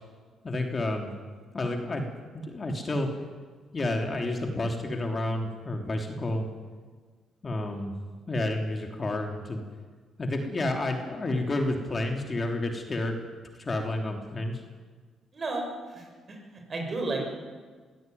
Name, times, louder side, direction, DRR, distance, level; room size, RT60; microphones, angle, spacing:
voice 1, 0.4-1.1 1.5-2.1 2.3-3.1 3.7-6.5 7.4-7.9 8.3-9.6 10.2-13.2 13.6-14.6, left 2 dB, 30° left, 3 dB, 3.2 m, -30 dB
voice 2, 15.3-17.3, right 2 dB, 40° right, 2 dB, 7.1 m, -33 dB
23.5 x 17.0 x 9.4 m, 1.5 s
cardioid pair, 90°, 0 cm